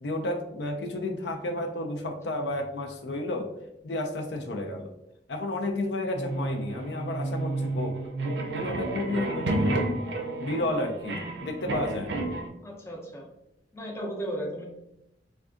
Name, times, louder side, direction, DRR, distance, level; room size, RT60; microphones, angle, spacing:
voice 1, 0.0-3.5 3.8-4.9 5.3-8.0 8.5-9.8 10.4-12.2, left 1 dB, 75° left, 4 dB, 0.4 m, -32 dB
sound 1, 6.1-12.5, right 2 dB, 70° right, 0.5 m, -31 dB
voice 2, 12.6-13.3 13.7-14.6, equal, 15° left, -1 dB, 0.5 m, -35 dB
3.5 x 2.3 x 2.4 m, 0.87 s
head